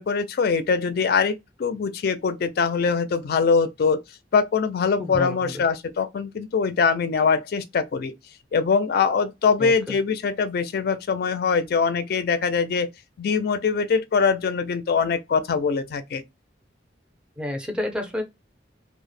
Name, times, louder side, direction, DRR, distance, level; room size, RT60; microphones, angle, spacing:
voice 1, 0.0-4.0 4.3-8.1 8.5-12.9 13.2-16.2, left 5 dB, 55° left, 0.4 m, -23 dB
voice 2, 5.0-5.6 9.6-9.9 17.4-18.2, left 1 dB, 5° right, 0.5 m, -30 dB
2.1 x 2.0 x 3.1 m
head